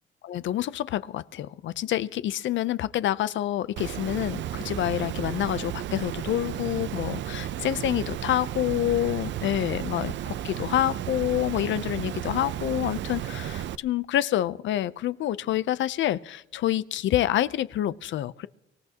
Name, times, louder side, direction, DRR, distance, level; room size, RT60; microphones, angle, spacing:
voice 1, 0.2-18.5, left 13 dB, 70° left, 15 dB, 0.6 m, -27 dB
Water, 3.8-13.8, right 11 dB, 65° right, 0.6 m, -33 dB
25.0 x 15.5 x 2.9 m, 0.92 s
cardioid pair, 90°, 20 cm